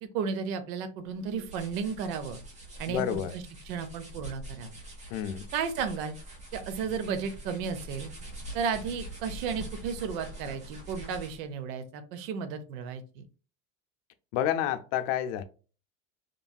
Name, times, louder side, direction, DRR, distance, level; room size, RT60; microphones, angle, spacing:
voice 1, 0.0-2.4 2.8-4.7 5.5-6.2 6.5-8.1 8.5-13.2, right 6 dB, 75° right, 0.6 m, -34 dB
sound 1, 1.1-11.5, right 1 dB, 15° right, 0.6 m, -44 dB
voice 2, 2.9-3.3 5.1-5.5 14.3-15.4, left 10 dB, 65° left, 0.5 m, -29 dB
3.1 x 2.5 x 2.2 m
cardioid pair, 165°, 42 cm